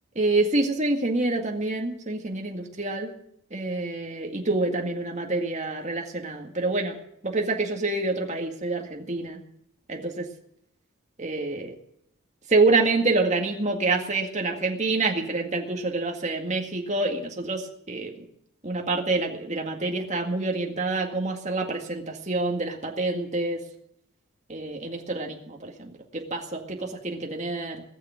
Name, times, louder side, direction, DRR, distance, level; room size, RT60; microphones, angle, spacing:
voice 1, 0.2-3.1 3.5-7.0 7.2-9.4 9.9-10.3 11.2-11.7 12.5-18.1 18.6-23.6 24.5-27.8, right 3 dB, 35° right, 1 dB, 2.0 m, -27 dB
19.5 x 6.9 x 8.8 m, 0.75 s
head